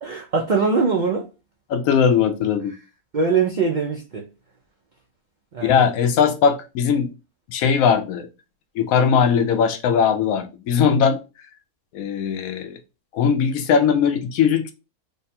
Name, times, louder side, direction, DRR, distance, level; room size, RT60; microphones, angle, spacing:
voice 1, 0.0-1.2 3.1-4.2 5.5-5.9, right 4 dB, 65° right, 0.4 m, -22 dB
voice 2, 1.7-2.7 5.6-7.1 7.5-8.3 8.8-11.2 11.9-12.8 13.1-14.7, left 7 dB, 70° left, 0.9 m, -19 dB
3.2 x 2.2 x 4.1 m
omnidirectional pair, 1.6 m